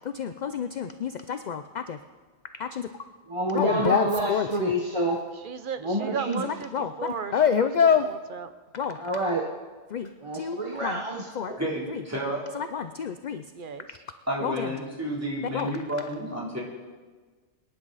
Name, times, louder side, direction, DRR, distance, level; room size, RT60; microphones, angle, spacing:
voice 1, 0.1-2.0 2.6-2.9 3.5-4.7 6.4-6.9 7.3-8.1 8.7-9.0 9.9-11.0 11.4-11.5 11.9-12.0 12.5-13.4 14.4-14.7 15.5-15.7, left 7 dB, 55° left, 9 dB, 0.5 m, -27 dB
voice 2, 3.3-5.2 5.8-6.4 9.0-9.5 10.2-11.3, right 1 dB, 30° right, 0 dB, 1.0 m, -28 dB
voice 3, 5.3-8.5 13.5-14.0, right 6 dB, 55° right, 11 dB, 0.7 m, -36 dB
voice 4, 11.6-12.5 14.3-16.6, equal, 15° right, -5 dB, 3.3 m, -31 dB
23.5 x 10.5 x 4.0 m, 1.4 s
omnidirectional pair, 1.2 m